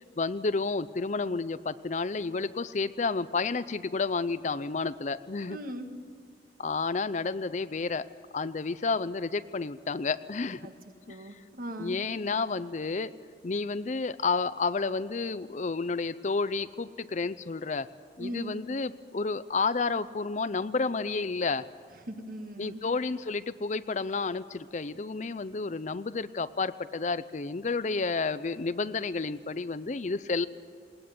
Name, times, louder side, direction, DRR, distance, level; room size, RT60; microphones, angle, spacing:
voice 1, 0.2-5.6 6.6-8.0 8.3-10.6 11.1-11.2 11.8-13.1 13.4-17.9 18.2-21.7 22.6-30.5, left 4 dB, 40° left, 15 dB, 0.5 m, -31 dB
voice 2, 5.5-5.9 10.6-10.7 11.1-12.0 18.2-18.5 22.1-22.8, right 1 dB, 50° right, 6 dB, 1.9 m, -39 dB
20.0 x 19.0 x 9.5 m, 2.1 s
head